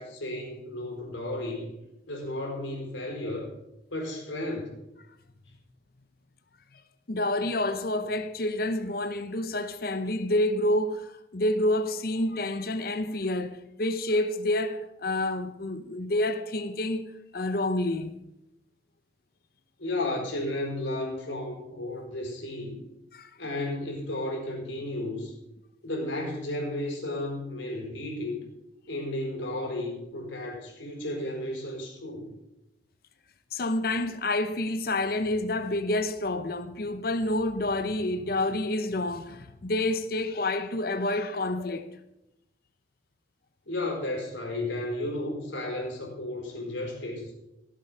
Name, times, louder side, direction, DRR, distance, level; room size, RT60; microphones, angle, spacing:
voice 1, 0.0-1.7 2.1-3.5 3.9-4.7 19.8-22.8 23.4-25.3 25.8-28.4 28.9-32.3 43.7-47.3, left 1 dB, 90° left, 4.6 m, -33 dB
voice 2, 7.1-18.1 23.1-23.3 33.5-41.9, left 1 dB, 50° left, 0.7 m, -28 dB
17.0 x 7.3 x 5.6 m
head